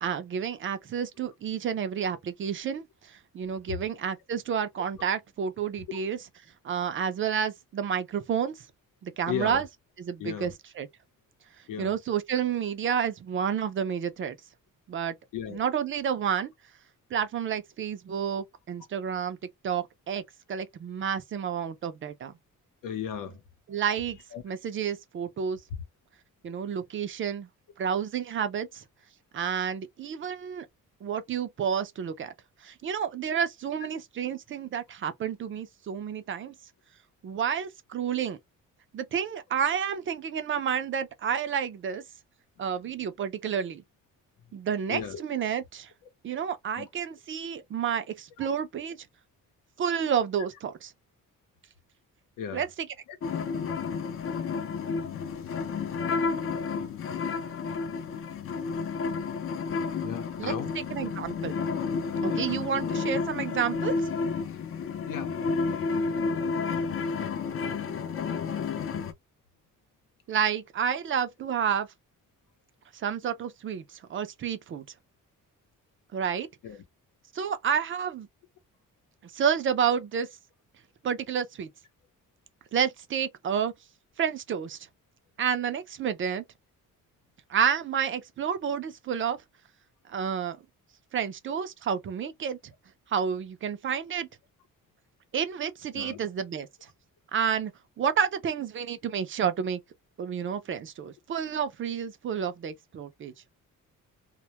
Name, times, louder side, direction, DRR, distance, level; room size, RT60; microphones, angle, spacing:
voice 1, 0.0-6.2 6.6-8.7 9.0-9.7 10.0-10.9 11.8-14.4 14.9-15.1 15.5-16.5 17.1-19.4 19.6-20.2 20.5-22.3 23.7-24.2 24.4-25.6 26.4-27.5 27.8-28.8 29.3-30.7 31.0-32.3 32.6-36.5 37.2-38.4 38.9-42.0 42.6-43.8 44.5-45.9 46.2-49.0 49.8-50.9 52.5-52.7 60.4-60.5 60.9-61.5 62.2-64.1 70.3-71.9 72.9-74.8 76.1-76.5 77.3-78.3 79.2-80.3 81.0-81.7 82.7-83.7 84.2-84.8 85.4-86.4 87.5-89.4 90.1-90.6 91.1-92.6 93.1-94.3 95.3-96.7 97.3-97.7 98.0-99.8 100.2-103.3, right 7 dB, 40° right, 0.4 m, -30 dB
voice 2, 9.3-9.6 10.2-10.5 11.7-12.0 15.3-15.6 22.8-23.4 24.3-24.4 44.9-45.2 46.8-46.9 52.4-52.6 53.1-53.2 60.0-60.8 62.3-62.5 65.1-65.4 76.6-76.8 95.9-96.2, left 8 dB, 80° left, 0.7 m, -35 dB
sound 1, 53.2-69.1, left 5 dB, 45° left, 0.4 m, -31 dB
2.2 x 2.1 x 2.7 m
cardioid pair, 145°, 32 cm